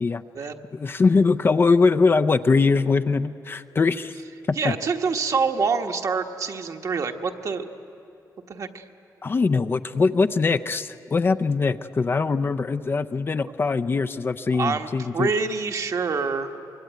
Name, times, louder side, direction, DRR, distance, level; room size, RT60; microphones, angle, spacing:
voice 1, 0.7-4.2 4.5-4.7 9.2-15.3, left 4 dB, 30° left, 9 dB, 0.5 m, -22 dB
voice 2, 4.5-7.7 8.5-8.9 14.5-14.9 15.1-16.6, right 5 dB, 50° right, 5 dB, 1.3 m, -26 dB
24.5 x 23.0 x 9.3 m, 2.8 s
wide cardioid pair, 145°, 7 cm